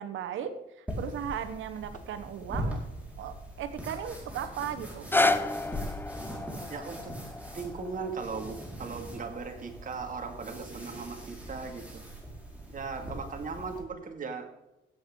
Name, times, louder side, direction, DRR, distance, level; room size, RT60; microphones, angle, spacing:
voice 1, 0.0-2.8 3.2-5.1, right 8 dB, 75° right, 10 dB, 0.9 m, -37 dB
sound 1, 0.9-13.8, right 1 dB, 5° right, 4.3 m, -41 dB
sound 2, 1.2-11.9, left 3 dB, 40° left, 1.6 m, -50 dB
sound 3, 4.8-10.9 11.6-11.7, left 2 dB, 10° left, 0.7 m, -32 dB
voice 2, 6.7-7.1 7.5-12.0 12.7-14.5, right 4 dB, 45° right, 4 dB, 2.1 m, -38 dB
16.0 x 8.3 x 3.7 m, 0.94 s
cardioid pair, 90°, 20 cm